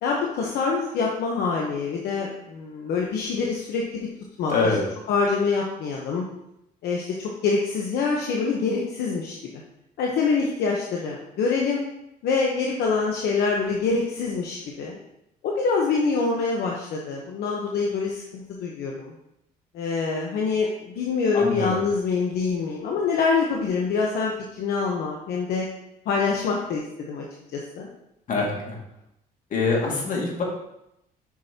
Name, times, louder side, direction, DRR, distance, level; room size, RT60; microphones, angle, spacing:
voice 1, 0.0-4.1 4.4-4.7 5.1-6.2 6.8-9.4 10.0-11.8 12.2-15.0 15.4-19.1 19.7-25.7 26.1-27.2 27.5-27.9, left 4 dB, 75° left, -1 dB, 1.1 m, -25 dB
voice 2, 4.5-4.8 21.3-21.8 28.3-28.8 29.5-30.4, left 4 dB, 50° left, -2 dB, 2.2 m, -24 dB
8.4 x 6.1 x 2.9 m, 0.82 s
cardioid pair, 110°, 17 cm